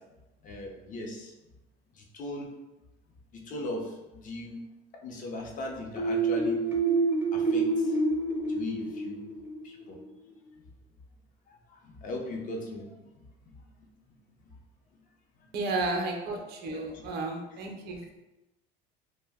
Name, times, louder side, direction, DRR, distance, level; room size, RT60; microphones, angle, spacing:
voice 1, 0.4-1.3 2.1-2.5 3.3-3.8 4.1-4.6 5.0-6.6 7.3-7.7 8.5-9.2 9.6-10.0 11.9-12.9 16.9-17.0, left 1 dB, 40° left, 1 dB, 0.6 m, -37 dB
sound 1, 6.0-9.6, right 3 dB, 10° right, 0.6 m, -27 dB
voice 2, 15.5-18.1, right 2 dB, 55° right, 2 dB, 0.6 m, -33 dB
2.5 x 2.1 x 3.4 m, 0.99 s
supercardioid pair, 105°, 20 cm